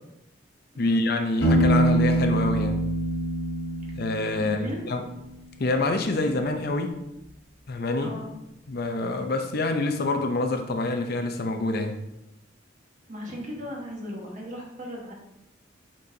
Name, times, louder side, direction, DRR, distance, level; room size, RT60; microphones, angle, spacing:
voice 1, 0.8-2.8 3.9-4.6 4.9-5.0 5.6-6.9 7.7-8.1 8.7-12.0, left 2 dB, 55° left, 5 dB, 0.6 m, -26 dB
Piano, 1.4-5.1, right 1 dB, 85° left, 1.8 m, -24 dB
voice 2, 4.4-4.8 7.9-8.3 13.1-15.1, equal, 40° right, -2 dB, 1.4 m, -36 dB
8.3 x 4.3 x 2.7 m, 0.87 s
head